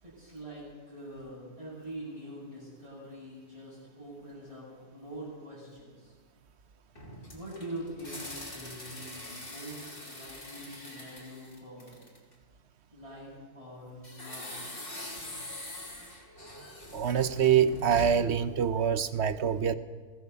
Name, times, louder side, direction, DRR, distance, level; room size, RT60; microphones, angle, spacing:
voice 1, 0.0-6.1 7.3-12.0 12.9-14.8, right 1 dB, 20° right, -9 dB, 8.1 m, -44 dB
sound 1, 7.0-12.3 14.0-18.4, left 1 dB, 30° left, 3.7 m, -43 dB
voice 2, 16.9-19.7, right 8 dB, 50° right, 12 dB, 1.0 m, -25 dB
23.5 x 17.0 x 7.0 m, 1.5 s
omnidirectional pair, 1.8 m